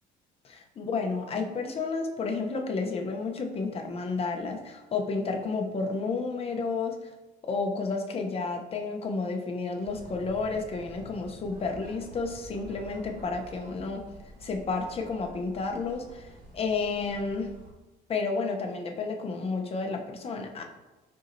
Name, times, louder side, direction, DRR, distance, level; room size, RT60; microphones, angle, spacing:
voice 1, 0.4-7.1 7.4-14.1 14.4-17.5 18.1-20.6, left 4 dB, 35° left, 3 dB, 0.7 m, -31 dB
sound 1, 9.8-17.7, equal, 55° right, 1.3 m, -49 dB
4.7 x 4.1 x 2.6 m, 1.1 s
cardioid pair, 110°, 17 cm